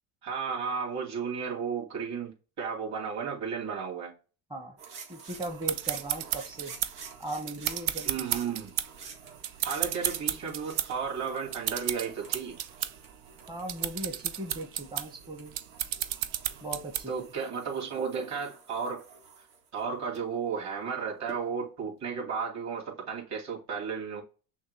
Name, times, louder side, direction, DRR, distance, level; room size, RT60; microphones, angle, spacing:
voice 1, 0.2-4.1 8.0-8.7 9.6-12.6 17.1-19.0 19.7-24.2, right 6 dB, 40° right, 2.7 m, -33 dB
sound 1, 4.8-20.2 21.3-21.4, right 5 dB, 65° right, 1.8 m, -49 dB
voice 2, 5.1-6.7 7.2-8.3 13.5-15.5 16.6-17.1, right 1 dB, 10° right, 0.8 m, -38 dB
sound 2, 5.4-17.3, right 12 dB, 85° right, 0.6 m, -33 dB
6.2 x 2.3 x 3.3 m
supercardioid pair, 105°, 42 cm